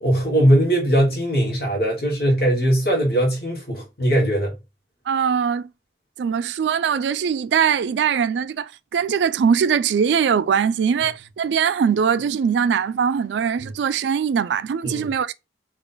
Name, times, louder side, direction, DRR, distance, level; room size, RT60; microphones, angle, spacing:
voice 1, 0.0-4.5 13.6-13.7 14.8-15.1, right 1 dB, 60° left, 1.0 m, -20 dB
voice 2, 5.1-5.7 6.2-15.3, right 7 dB, 85° right, 0.3 m, -21 dB
3.9 x 2.5 x 3.7 m
head